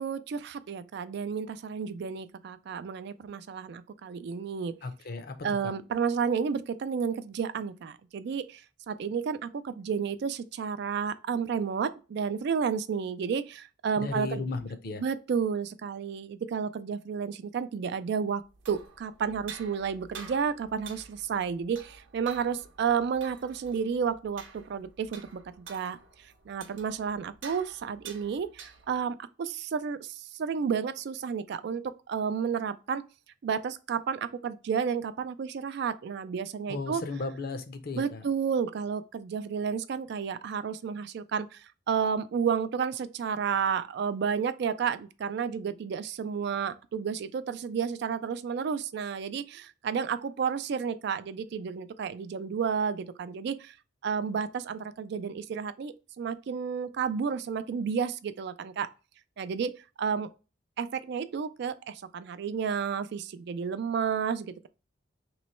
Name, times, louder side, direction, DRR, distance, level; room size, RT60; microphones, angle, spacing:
voice 1, 0.0-4.8 5.4-8.6 8.9-14.4 15.0-18.4 18.7-26.0 26.5-33.0 33.4-37.0 38.0-53.7 54.0-58.9 59.4-60.3 60.8-64.7, right 6 dB, 55° right, 0.3 m, -31 dB
voice 2, 4.8-5.3 5.6-5.7 14.0-15.0 36.7-38.2, left 3 dB, 50° left, 0.6 m, -35 dB
sound 1, 18.4-29.1, right 6 dB, 75° right, 0.8 m, -49 dB
3.1 x 3.0 x 4.2 m
head